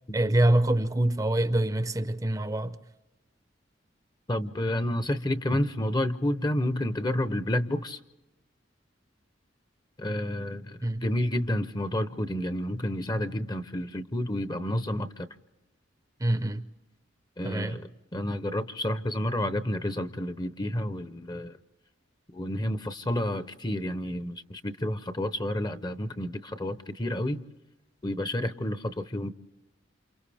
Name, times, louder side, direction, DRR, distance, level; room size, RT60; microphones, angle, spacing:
voice 1, 0.1-2.8 10.8-11.0 16.2-16.6 17.4-17.8, right 1 dB, 20° right, 0.6 m, -25 dB
voice 2, 4.3-8.0 10.0-15.3 17.4-21.6 22.3-27.4 28.0-29.3, left 1 dB, 20° left, 0.7 m, -30 dB
28.5 x 27.5 x 3.4 m
head